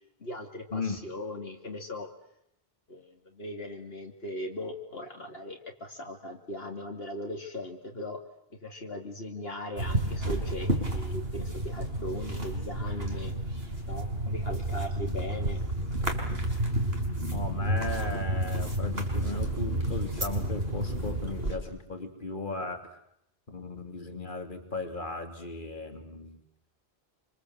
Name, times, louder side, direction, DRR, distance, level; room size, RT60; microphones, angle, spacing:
voice 1, 0.2-2.1 2.9-8.2 8.6-13.3 13.8-15.6, left 1 dB, 70° left, 2 dB, 3.1 m, -39 dB
sound 1, 9.8-21.6, right 1 dB, 70° right, 5.3 m, -31 dB
voice 2, 17.3-22.9 23.5-26.4, left 3 dB, 50° left, 5 dB, 3.3 m, -36 dB
28.0 x 26.0 x 8.1 m, 0.75 s
omnidirectional pair, 1.1 m